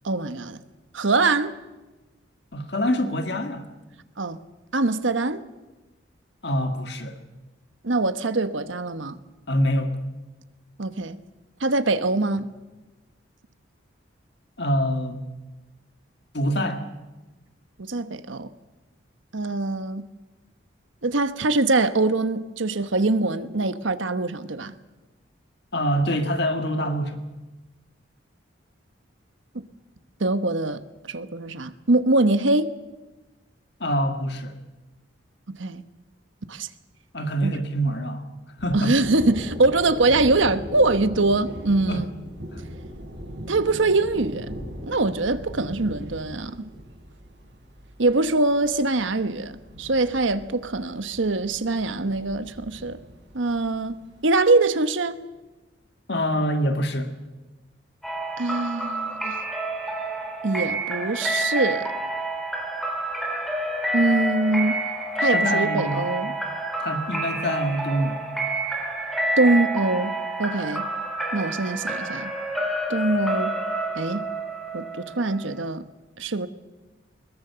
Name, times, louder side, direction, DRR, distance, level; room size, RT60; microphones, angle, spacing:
voice 1, 0.0-0.6 0.9-1.5 4.2-4.4 4.7-5.4 7.8-9.2 10.8-11.2 11.6-12.5 17.8-18.5 19.3-20.0 21.0-24.7 30.2-32.7 35.6-35.8 36.5-36.7 37.4-37.5 38.7-42.1 43.5-44.5 44.9-46.7 48.0-49.5 49.8-53.0 53.3-55.2 58.4-59.4 60.4-61.9 63.9-64.9 65.2-66.3 69.4-70.1 70.4-70.9 71.3-72.3 72.9-73.5 73.9-74.3 74.7-75.8 76.2-76.5, right 2 dB, 75° right, 1.1 m, -23 dB
voice 2, 2.5-3.7 6.4-7.2 9.5-10.0 14.6-15.2 16.3-16.8 25.7-27.2 33.8-34.5 37.1-38.2 38.6-39.0 41.9-42.1 42.5-42.6 56.1-57.1 65.3-66.1 66.8-68.3, equal, 55° left, 1.8 m, -25 dB
Thunder, 38.6-54.1, equal, 60° right, 6.8 m, -39 dB
sound 1, 58.0-75.6, right 1 dB, ahead, 3.2 m, -28 dB
21.0 x 21.0 x 6.9 m
head